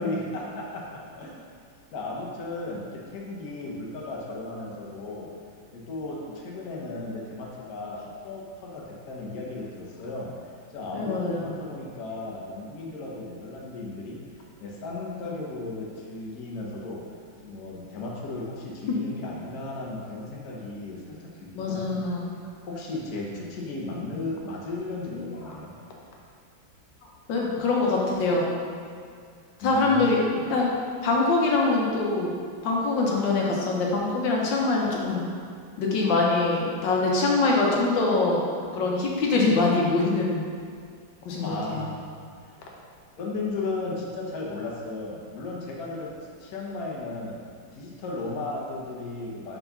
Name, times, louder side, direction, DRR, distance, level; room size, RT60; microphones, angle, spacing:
voice 1, 0.0-1.4 1.9-5.3 5.7-10.3 10.7-17.1 17.4-22.0 22.6-25.7 29.6-30.1 41.3-42.1 42.4-42.7 43.2-47.4 47.7-49.6, left 2 dB, 60° left, -2 dB, 1.3 m, -35 dB
voice 2, 10.9-11.5 18.9-19.0 21.6-22.3 27.3-28.6 29.6-30.2 30.5-30.7 31.0-32.3 32.6-35.3 35.8-38.4 38.7-40.4 41.2-41.9, left 3 dB, 80° left, -2 dB, 1.5 m, -24 dB
4.7 x 3.9 x 5.5 m, 2.2 s
omnidirectional pair, 2.0 m